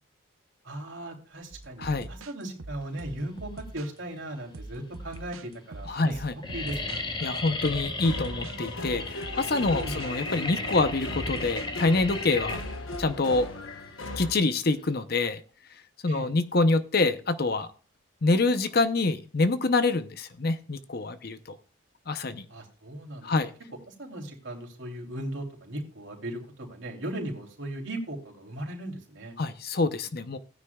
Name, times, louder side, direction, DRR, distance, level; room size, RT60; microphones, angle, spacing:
voice 1, 0.6-6.1 6.5-7.1 9.8-9.9 16.1-16.3 22.5-23.3 23.9-29.3, right 1 dB, 60° right, 1 dB, 3.1 m, -37 dB
sound 1, 1.5-4.0 4.5-7.0 7.5-10.1 10.8-13.5, right 2 dB, 80° right, 0.8 m, -43 dB
sound 2, 3.8-4.4 5.1-5.2 5.4-5.8 6.1-15.0, left 3 dB, 20° left, 0.9 m, -36 dB
voice 2, 5.9-6.3 7.2-12.6 13.0-13.5 14.2-15.4 16.0-17.7 18.2-21.6 22.1-22.4 23.2-23.5 29.4-30.4, left 3 dB, 50° left, 11 dB, 0.7 m, -26 dB
sound 3, 7.2-14.3, left 2 dB, 70° left, 1.0 m, -38 dB
16.5 x 9.7 x 2.3 m, 0.39 s
head